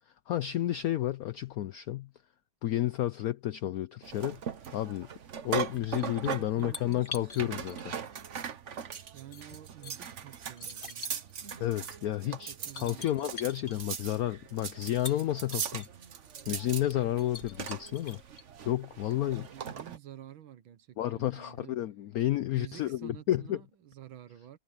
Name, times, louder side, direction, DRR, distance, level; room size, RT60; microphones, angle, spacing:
voice 1, 0.3-2.1 2.6-4.4 4.7-5.1 5.4-7.9 11.6-15.9 16.5-18.2 18.6-19.5 21.0-23.6, left 13 dB, 85° left, 0.8 m, -31 dB
sound 1, 4.0-20.0, right 7 dB, 45° right, 1.1 m, -40 dB
sound 2, 5.3-8.1 8.7-9.9 10.5-11.4 12.1-12.2 12.5-13.8 14.8-15.9 16.4-16.5 16.8-18.4, left 4 dB, 30° left, 1.6 m, -45 dB
voice 2, 6.3-7.6 9.1-11.2 12.2-13.2 19.5-21.8 22.5-24.6, right 11 dB, 85° right, 1.9 m, -49 dB
omnidirectional pair, 2.1 m